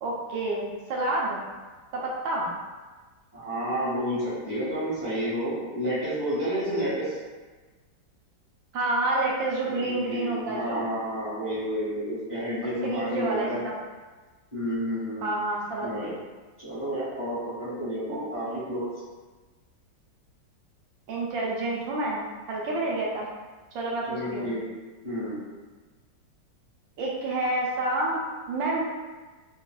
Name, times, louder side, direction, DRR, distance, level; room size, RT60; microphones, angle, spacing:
voice 1, 0.0-1.4 1.9-2.5 8.7-10.9 12.8-13.8 15.2-16.1 18.1-18.2 18.5-18.6 21.1-23.3 23.7-24.5 27.0-28.8, right 2 dB, 80° right, -3 dB, 1.3 m, -29 dB
voice 2, 3.3-7.2 9.7-13.6 14.5-15.3 15.8-16.1 16.6-18.9 24.1-24.6 25.0-25.4, equal, 15° left, -11 dB, 0.7 m, -30 dB
3.4 x 2.3 x 2.2 m, 1.3 s
omnidirectional pair, 2.0 m